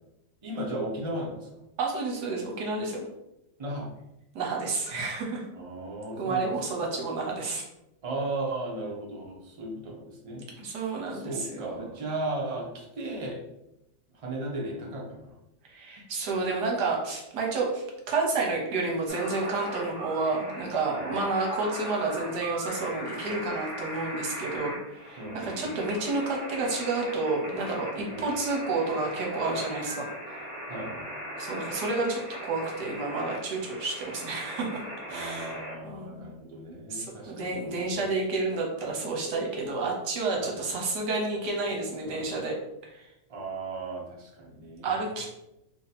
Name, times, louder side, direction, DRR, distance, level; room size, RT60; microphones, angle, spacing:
voice 1, 0.4-1.5 3.6-3.9 5.5-6.8 8.0-10.4 10.7-13.4 14.1-15.3 21.0-21.1 25.2-25.8 28.1-28.2 30.7-31.1 35.1-37.9 40.4-40.7 42.0-42.2 43.3-45.0, right 2 dB, 50° right, -3 dB, 0.4 m, -36 dB
voice 2, 1.8-3.1 4.3-5.4 6.2-7.6 10.6-11.9 15.6-30.1 31.4-34.8 35.1-35.6 35.8-36.3 36.9-42.6 42.8-43.1 44.8-45.3, right 3 dB, 70° right, 0 dB, 1.3 m, -30 dB
sound 1, 19.1-35.8, equal, 10° right, 1.2 m, -39 dB
2.8 x 2.7 x 4.0 m, 0.87 s
omnidirectional pair, 1.9 m